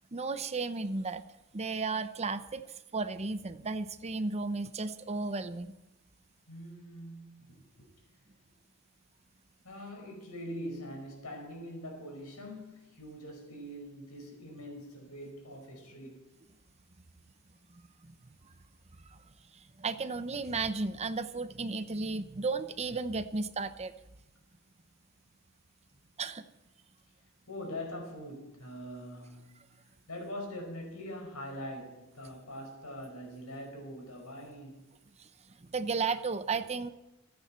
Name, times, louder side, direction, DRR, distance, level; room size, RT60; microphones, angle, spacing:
voice 1, 0.1-1.2 1.5-2.6 2.9-5.8 18.0-18.1 19.1-19.2 19.8-23.9 26.2-26.4 35.2-35.3 35.6-36.9, right 4 dB, 30° right, 0.7 m, -34 dB
voice 2, 6.5-7.9 9.6-16.3 27.5-34.8, equal, 85° left, 5.1 m, -43 dB
27.0 x 9.6 x 4.4 m
head